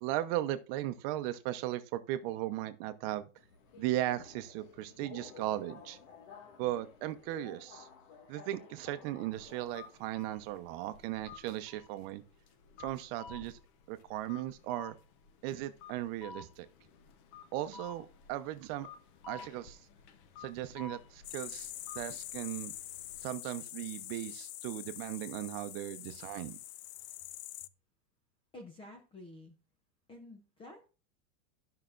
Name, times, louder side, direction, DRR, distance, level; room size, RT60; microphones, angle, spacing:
voice 1, 0.0-3.3 3.8-6.0 6.6-7.9 8.3-12.2 12.8-13.6 13.9-14.9 15.4-16.7 17.5-18.9 19.3-19.8 20.4-22.7 23.2-26.6, right 14 dB, 40° right, 0.8 m, -37 dB
Subway metro underground, 3.4-10.1, left 5 dB, 65° left, 1.8 m, -54 dB
sound 1, 9.3-23.2, left 5 dB, 40° left, 0.8 m, -53 dB
sound 2, 21.2-27.7, left 14 dB, 85° left, 0.6 m, -45 dB
voice 2, 28.5-29.5 30.1-30.9, left 1 dB, 15° left, 0.6 m, -50 dB
13.0 x 5.7 x 2.5 m
supercardioid pair, 160°, 42 cm